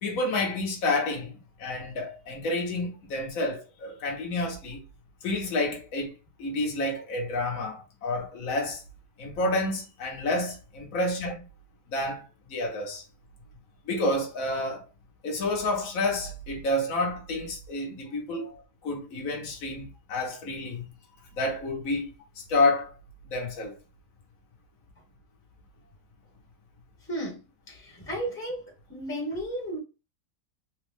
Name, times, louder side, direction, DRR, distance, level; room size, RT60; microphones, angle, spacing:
voice 1, 0.0-4.8 5.2-8.8 9.2-11.4 11.9-13.0 13.8-14.8 15.2-18.5 18.8-20.8 21.3-22.9 23.3-23.8, left 2 dB, 55° left, 1.5 m, -29 dB
voice 2, 27.1-27.4 27.7-28.6 28.9-29.8, right 1 dB, 10° left, 1.1 m, -33 dB
4.0 x 2.5 x 3.4 m
omnidirectional pair, 1.9 m